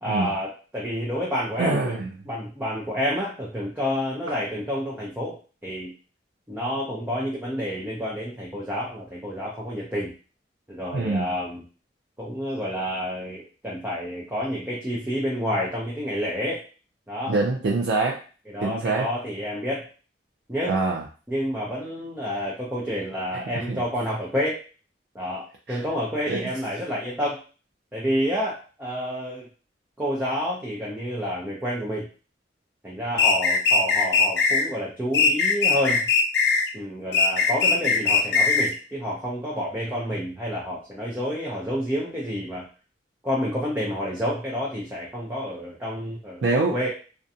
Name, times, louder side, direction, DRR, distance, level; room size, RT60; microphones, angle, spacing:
voice 1, 0.0-2.0 2.3-5.4 5.6-5.9 6.5-10.1 10.7-11.6 12.2-16.6 17.1-17.3 18.5-19.9 20.5-20.8 21.3-24.6 25.1-27.4 27.9-29.5 30.0-32.1 32.8-36.1 36.7-42.6 43.2-46.9, equal, 10° right, -5 dB, 0.5 m, -29 dB
voice 2, 1.6-2.1 10.9-11.3 17.3-18.2 18.6-19.1 20.7-21.0 23.5-23.8 25.7-25.8 26.3-26.5 46.4-46.8, right 3 dB, 75° right, -2 dB, 0.4 m, -24 dB
sound 1, 33.2-34.6 35.1-36.7 37.1-38.7, left 4 dB, 70° left, 0.4 m, -20 dB
2.5 x 2.2 x 2.6 m, 0.36 s
head